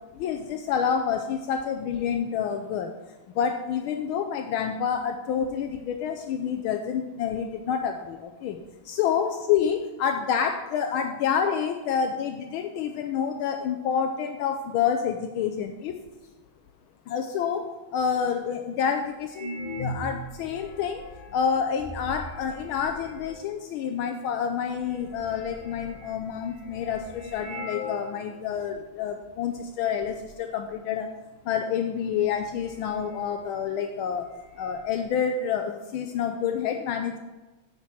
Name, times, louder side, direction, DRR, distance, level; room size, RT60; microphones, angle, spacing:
voice 1, 0.1-3.0 3.3-8.6 8.8-16.0 17.1-21.0 21.3-31.1 31.4-34.3 34.6-37.2, left 7 dB, 80° left, 5 dB, 1.4 m, -28 dB
sound 1, 18.6-18.7 19.3-23.6 24.3-24.4 24.6-28.2 28.5-28.6 29.2-29.6 29.8-30.3 31.6-31.7 32.1-33.7 33.9-34.0 34.3-35.0, left 1 dB, 35° left, 0.9 m, -40 dB
7.1 x 6.0 x 7.6 m, 1.2 s
omnidirectional pair, 2.3 m